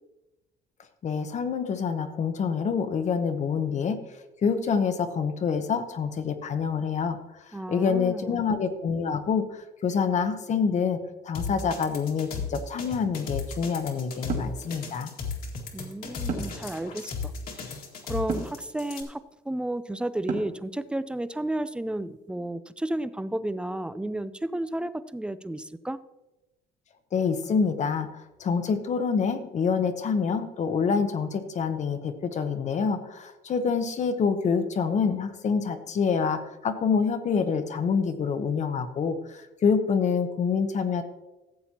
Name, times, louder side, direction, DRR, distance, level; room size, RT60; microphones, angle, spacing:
voice 1, 1.0-4.0 4.4-7.2 7.7-11.0 11.2-15.1 27.1-41.0, left 6 dB, 45° left, 8 dB, 0.9 m, -26 dB
voice 2, 7.5-8.4 15.7-17.3 18.1-19.2 19.5-26.0, right 1 dB, 5° right, 14 dB, 0.4 m, -32 dB
sound 1, 11.3-19.0, left 5 dB, 60° left, 1.9 m, -35 dB
sound 2, 14.3-14.6 16.3-16.7 18.3-18.6 20.3-20.7, right 5 dB, 50° right, 1.9 m, -31 dB
14.5 x 7.6 x 2.9 m, 1.0 s
cardioid pair, 110°, 17 cm